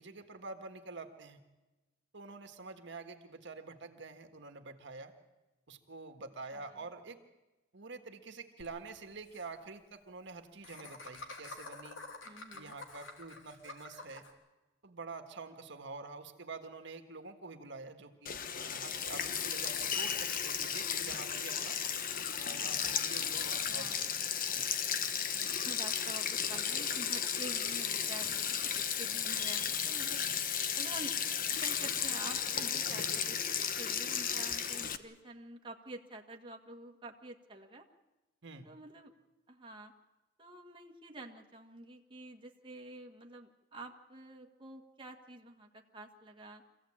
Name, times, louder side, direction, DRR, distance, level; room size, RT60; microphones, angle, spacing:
voice 1, 0.0-1.4 2.1-5.1 5.7-7.2 7.7-12.0 12.5-14.2 14.8-18.4 18.7-21.8 22.4-24.1 24.5-24.6 38.4-38.7, right 3 dB, 65° right, 6 dB, 1.7 m, -47 dB
Laughter, 8.6-8.7 9.0-9.1 9.3-9.4 10.6-14.3, left 3 dB, 80° left, 2.9 m, -48 dB
voice 2, 12.2-12.7 23.5-24.1 25.6-30.3 30.8-31.3 31.6-33.4 33.8-37.9 38.6-39.1 39.5-39.9 40.4-46.6, right 2 dB, 25° right, 1 dB, 1.6 m, -48 dB
Sink (filling or washing), 18.3-35.0, left 8 dB, 45° left, 1.0 m, -34 dB
25.0 x 16.0 x 8.8 m, 1.1 s
head